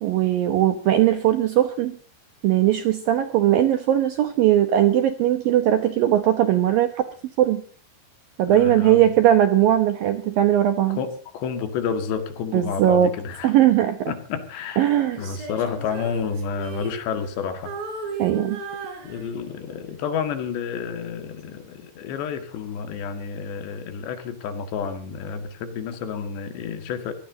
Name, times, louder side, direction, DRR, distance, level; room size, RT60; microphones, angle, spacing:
voice 1, 0.0-2.0 2.4-7.0 7.4-7.6 8.4-11.0 12.5-13.1 13.4-14.1 14.8-15.2 18.2-18.6, right 12 dB, 75° right, 8 dB, 2.2 m, -19 dB
voice 2, 8.5-9.1 10.9-13.5 14.1-17.8 19.0-27.1, left 6 dB, 70° left, 7 dB, 3.9 m, -30 dB
Female singing, 15.1-17.4 17.7-19.7 20.2-20.5, right 5 dB, 55° right, 5.3 m, -35 dB
24.5 x 16.5 x 2.8 m, 0.42 s
omnidirectional pair, 5.3 m